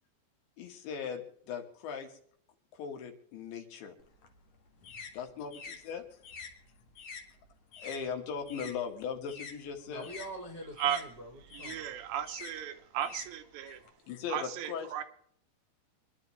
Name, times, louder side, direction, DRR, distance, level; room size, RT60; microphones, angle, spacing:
voice 1, 0.6-2.2 2.7-4.0 5.1-6.1 7.8-10.1 13.7-13.8 14.1-15.0, left 6 dB, 80° left, 4.1 m, -39 dB
sound 1, 4.0-8.8 9.1-13.9, left 5 dB, 55° left, 1.8 m, -48 dB
voice 2, 9.9-11.9, equal, 35° right, 1.6 m, -45 dB
voice 3, 11.4-13.8 14.3-15.0, right 10 dB, 75° right, 3.2 m, -35 dB
26.0 x 11.0 x 3.3 m
omnidirectional pair, 5.2 m